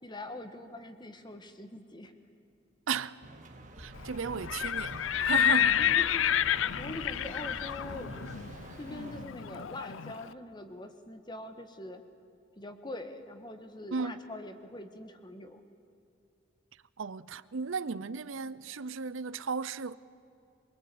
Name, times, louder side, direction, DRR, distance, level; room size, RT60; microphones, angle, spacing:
voice 1, 0.0-2.1 5.8-8.1 8.8-12.0 12.6-15.6, left 1 dB, 20° left, 1.5 m, -43 dB
voice 2, 2.9-3.2 3.8-5.8 13.9-14.2 17.0-20.0, right 5 dB, 80° right, 0.7 m, -35 dB
sound 1, 3.2-9.3, right 2 dB, 40° right, 1.7 m, -48 dB
sound 2, 3.8-9.8, left 1 dB, 55° left, 2.2 m, -50 dB
Livestock farm animals working animals, 4.3-10.2, left 10 dB, 75° left, 0.5 m, -29 dB
24.5 x 22.5 x 8.6 m
head